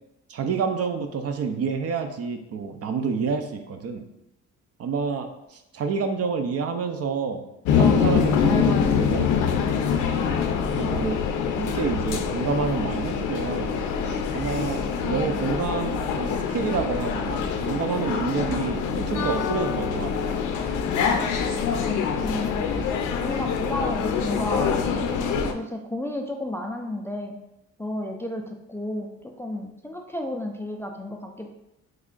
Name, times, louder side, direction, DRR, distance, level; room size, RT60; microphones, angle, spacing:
voice 1, 0.3-4.0 4.8-7.4 7.7-9.3 10.7-11.2 11.5-13.8 14.0-20.3, right 5 dB, 50° right, 6 dB, 0.5 m, -28 dB
sound 1, 7.6-25.5, left 6 dB, 80° left, 0.5 m, -25 dB
voice 2, 22.2-22.6 23.2-24.8 25.5-27.4 27.8-31.5, left 1 dB, 10° left, 2 dB, 0.3 m, -32 dB
3.2 x 2.4 x 3.7 m, 0.85 s
cardioid pair, 90°, 30 cm